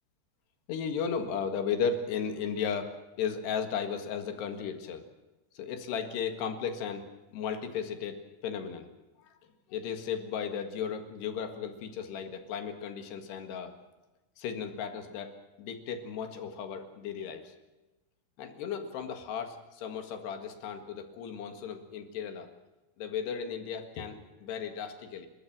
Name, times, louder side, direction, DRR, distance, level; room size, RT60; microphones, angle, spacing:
voice 1, 0.7-2.9 3.2-5.0 5.6-7.1 7.3-8.9 9.7-13.7 14.4-17.5 18.4-22.5 23.0-25.3, left 7 dB, 70° left, 6 dB, 3.7 m, -35 dB
30.0 x 14.0 x 7.6 m, 1.1 s
omnidirectional pair, 5.1 m